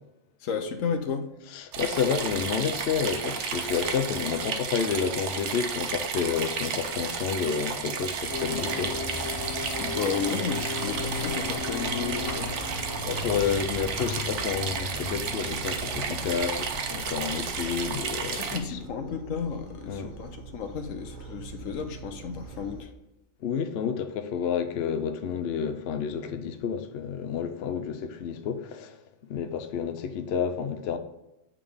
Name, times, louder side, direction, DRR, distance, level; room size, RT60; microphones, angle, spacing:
voice 1, 0.4-1.3 9.8-12.5 18.3-22.9, left 6 dB, 85° left, 1.1 m, -33 dB
voice 2, 1.5-9.0 13.0-18.5 19.9-20.1 23.4-29.0 29.2-31.0, left 7 dB, 60° left, 0.7 m, -30 dB
sound 1, 1.7-18.6, right 6 dB, 65° right, 1.0 m, -32 dB
sound 2, 8.3-16.4, left 3 dB, 20° left, 0.6 m, -35 dB
sound 3, 11.0-22.8, right 4 dB, 85° right, 1.5 m, -44 dB
8.4 x 3.7 x 3.4 m
omnidirectional pair, 1.4 m